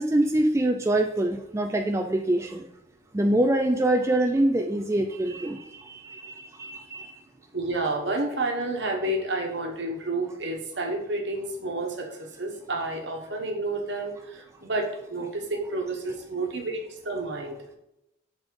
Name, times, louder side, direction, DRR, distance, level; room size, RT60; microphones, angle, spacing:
voice 1, 0.0-2.7 3.1-7.2, right 1 dB, 15° right, 3 dB, 0.4 m, -25 dB
voice 2, 7.5-17.5, right 2 dB, 60° right, 2 dB, 1.3 m, -30 dB
6.5 x 4.1 x 4.7 m, 0.83 s
head